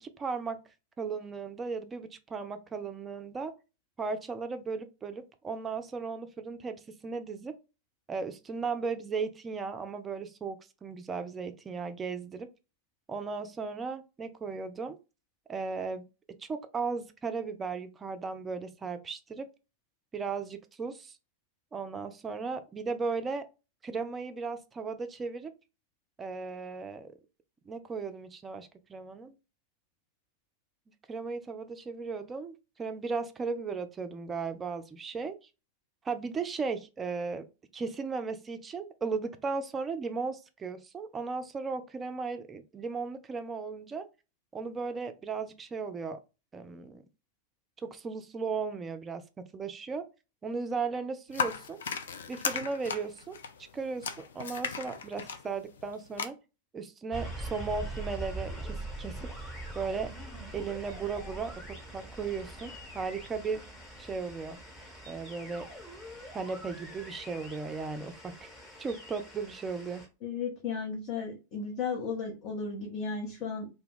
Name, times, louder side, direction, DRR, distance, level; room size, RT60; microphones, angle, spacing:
voice 1, 0.0-0.6 1.0-3.5 4.0-7.5 8.1-12.5 13.1-15.0 15.5-16.0 16.4-19.5 20.1-21.2 21.7-23.5 23.8-25.5 26.2-27.1 27.7-29.4 31.1-35.4 36.0-37.4 37.7-44.1 44.5-46.2 46.5-47.0 47.8-49.2 49.5-50.1 50.4-51.8 52.3-53.4 53.7-56.4 56.7-59.1 59.7-60.1 60.5-63.6 64.0-64.6 65.1-65.7 66.3-68.5 68.8-70.0, right 4 dB, 20° right, 0.4 m, -36 dB
sound 1, 51.3-56.3, left 6 dB, 65° left, 0.3 m, -36 dB
sound 2, 57.1-70.1, right 1 dB, 15° left, 1.0 m, -43 dB
voice 2, 70.2-73.7, left 5 dB, 40° left, 0.7 m, -35 dB
2.2 x 2.2 x 3.4 m
figure-of-eight pair, 90°, 0 cm